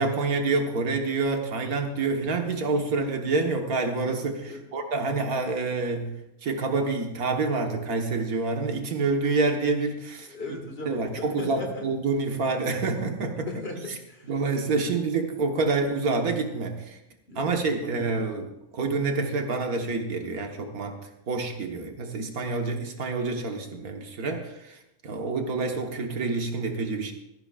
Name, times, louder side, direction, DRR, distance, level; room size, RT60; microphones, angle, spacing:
voice 1, 0.0-6.1 6.4-10.6 10.9-13.5 14.3-17.0 17.4-21.0 21.3-24.8 25.0-27.1, right 3 dB, 80° right, 3 dB, 1.9 m, -27 dB
voice 2, 10.3-11.9 13.4-14.3 14.7-15.0 17.3-18.3, left 3 dB, 45° left, 2 dB, 2.2 m, -38 dB
18.0 x 14.0 x 2.5 m, 0.90 s
omnidirectional pair, 1.5 m